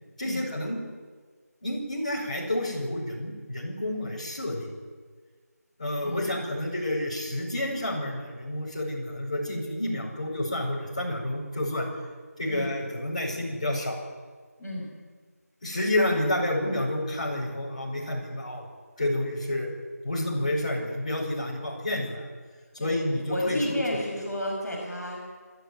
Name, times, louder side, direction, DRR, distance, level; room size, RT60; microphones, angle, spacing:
voice 1, 0.2-0.8 1.6-4.8 5.8-11.9 12.4-14.0 15.6-18.6 19.0-19.7 20.0-22.3 22.7-24.0, left 1 dB, 25° left, -4 dB, 5.3 m, -29 dB
voice 2, 6.0-6.4 12.4-12.7 14.6-14.9 22.8-22.9 23.3-25.2, left 1 dB, 5° left, -15 dB, 2.1 m, -32 dB
27.0 x 10.5 x 9.7 m, 1.5 s
figure-of-eight pair, 180°, 9 cm